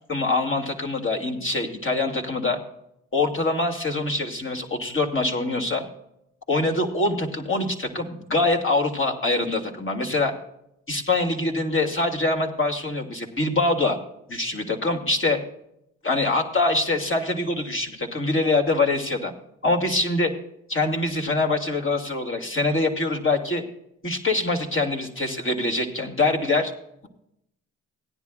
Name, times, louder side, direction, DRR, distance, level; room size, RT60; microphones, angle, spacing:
voice 1, 0.1-2.6 3.1-5.8 6.5-10.3 10.9-14.0 14.3-15.4 16.0-19.3 19.6-20.3 20.7-23.6 24.0-26.7, left 2 dB, 35° left, 3 dB, 2.5 m, -24 dB
17.5 x 10.5 x 2.5 m, 0.77 s
supercardioid pair, 55°, 35 cm